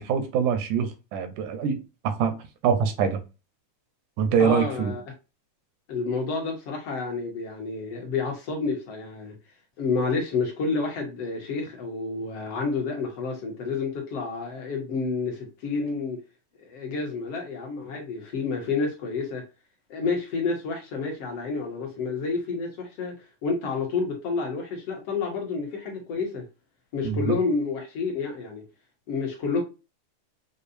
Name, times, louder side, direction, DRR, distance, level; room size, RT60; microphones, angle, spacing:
voice 1, 0.0-1.8 2.0-2.4 2.6-3.2 4.2-4.9 27.0-27.4, right 7 dB, 85° right, 2.3 m, -24 dB
voice 2, 4.4-5.0 5.9-9.4 9.8-16.2 16.6-19.4 19.9-23.1 23.4-26.4 26.9-28.6 29.1-29.6, left 4 dB, 60° left, 2.0 m, -29 dB
6.7 x 2.5 x 2.5 m
omnidirectional pair, 3.5 m